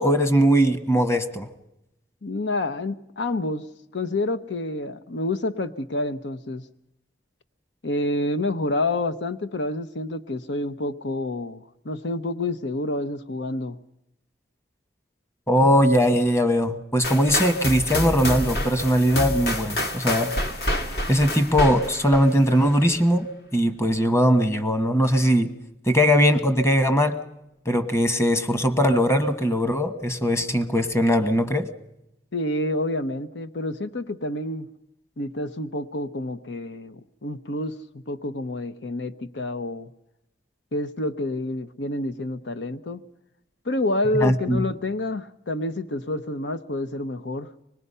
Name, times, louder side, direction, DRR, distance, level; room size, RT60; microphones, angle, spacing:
voice 1, 0.0-1.5 15.5-20.3 21.1-25.5 25.9-27.2 27.6-31.7 44.2-44.6, equal, 15° left, 9 dB, 1.3 m, -20 dB
voice 2, 2.2-3.6 3.9-6.6 7.8-13.8 32.3-34.7 35.2-39.9 40.7-43.0 43.6-47.5, left 2 dB, 80° left, 12 dB, 0.8 m, -28 dB
sound 1, 17.0-22.9, left 1 dB, 60° left, 2.0 m, -28 dB
25.0 x 20.0 x 5.5 m, 0.86 s
head